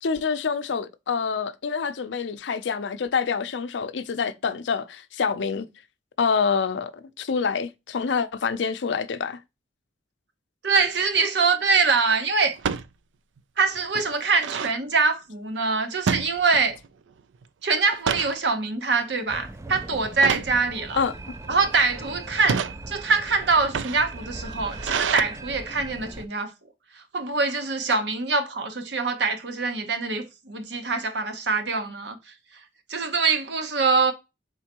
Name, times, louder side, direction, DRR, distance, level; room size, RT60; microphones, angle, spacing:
voice 1, 0.0-5.7 6.2-9.4 21.0-21.3, left 5 dB, 80° left, 0.5 m, -26 dB
voice 2, 10.6-12.6 13.6-16.8 17.6-21.0 21.5-26.5 26.9-32.6 32.9-34.1, right 4 dB, 70° right, 0.9 m, -24 dB
sound 1, 10.8-11.2 12.6-12.9 13.4-13.5 13.7-14.8 16.1-16.9 17.2-17.4 17.8-18.4 19.0-19.2 20.2-20.6 21.3-21.8 22.3-22.8 23.5-25.2, right 6 dB, 90° right, 0.4 m, -28 dB
sound 2, 19.3-26.3, right 2 dB, 15° right, 0.3 m, -39 dB
4.3 x 3.6 x 2.9 m
head